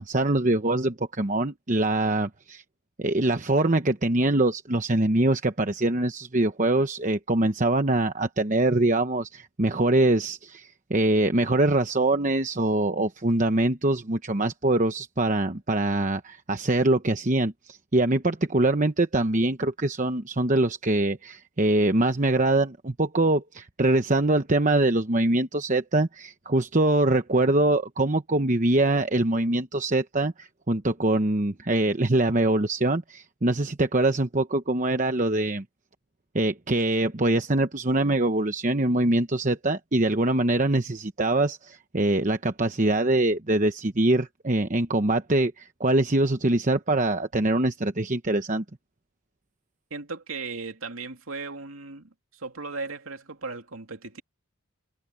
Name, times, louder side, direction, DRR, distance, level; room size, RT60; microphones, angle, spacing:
voice 1, 0.0-2.6 3.0-35.6 36.3-48.6, right 2 dB, 35° right, 1.0 m, -23 dB
voice 2, 49.9-54.2, right 4 dB, 70° right, 2.8 m, -37 dB
head